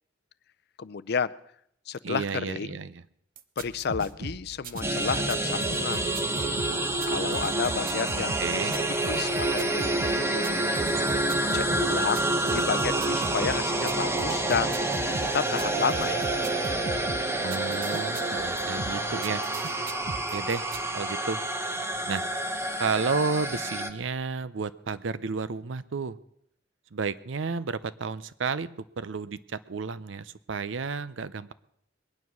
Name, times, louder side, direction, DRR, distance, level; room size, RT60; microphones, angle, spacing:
voice 1, 0.8-1.3 1.9-2.8 3.6-6.1 7.1-8.7 9.1-10.4 11.5-14.9 15.3-16.3, left 6 dB, 60° left, 16 dB, 0.5 m, -31 dB
voice 2, 2.0-3.0 8.4-8.8 17.4-19.4 20.1-20.7 20.9-21.4 22.1-22.2 22.8-26.2 26.9-28.7 29.0-31.5, right 4 dB, 85° right, 16 dB, 0.6 m, -32 dB
sound 1, 3.4-20.8, right 3 dB, 50° right, 0.8 m, -39 dB
sound 2, 4.8-23.9, right 2 dB, 15° right, 1.1 m, -28 dB
21.5 x 9.6 x 6.2 m, 0.72 s
head